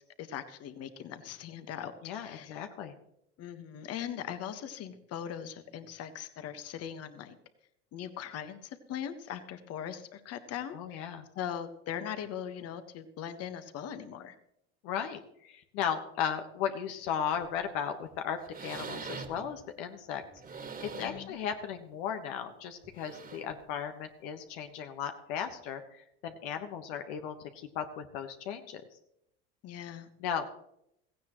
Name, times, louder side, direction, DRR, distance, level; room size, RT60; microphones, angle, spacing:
voice 1, 0.2-1.9 2.2-2.5 3.4-7.4 7.9-11.1 11.3-14.3 20.9-21.3 29.6-30.1, left 9 dB, 50° left, 9 dB, 1.4 m, -40 dB
voice 2, 2.0-2.9 10.7-11.2 14.8-20.2 20.8-28.8 30.2-30.6, left 8 dB, 70° left, 6 dB, 1.3 m, -36 dB
sound 1, 17.3-17.6 18.1-18.2 18.4-19.5 20.2-21.3 21.8-21.9 22.8-23.6 24.6-24.7, right 5 dB, 30° right, 2.0 m, -44 dB
16.5 x 15.5 x 3.1 m, 0.77 s
hypercardioid pair, 90°, 31 cm